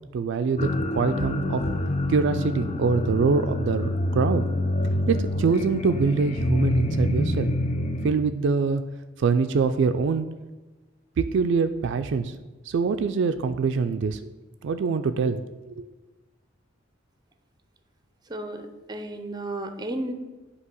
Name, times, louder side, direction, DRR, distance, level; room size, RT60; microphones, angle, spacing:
voice 1, 0.1-0.7 1.0-1.6 2.1-4.5 5.1-7.5 8.0-8.8 9.2-10.3 11.2-12.3 12.7-14.3 14.6-15.4 15.7-15.9, right 5 dB, 65° right, 9 dB, 0.3 m, -24 dB
sound 1, 0.6-8.1, left 1 dB, 35° left, 0.5 m, -26 dB
voice 2, 18.3-20.1, right 1 dB, 20° right, 8 dB, 0.6 m, -33 dB
8.2 x 2.9 x 6.1 m, 1.2 s
head